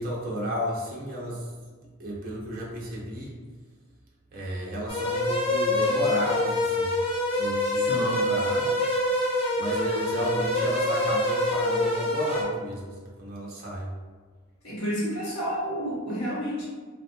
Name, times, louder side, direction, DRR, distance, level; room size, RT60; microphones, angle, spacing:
voice 1, 0.0-1.5 2.0-3.3 4.3-7.0 7.3-8.9 9.6-13.9, equal, 40° right, -4 dB, 0.5 m, -33 dB
sound 1, 4.9-12.4, left 1 dB, 25° left, 0.5 m, -25 dB
voice 2, 7.7-8.3 14.6-16.6, equal, 75° left, -5 dB, 0.9 m, -30 dB
2.5 x 2.3 x 2.6 m, 1.5 s
head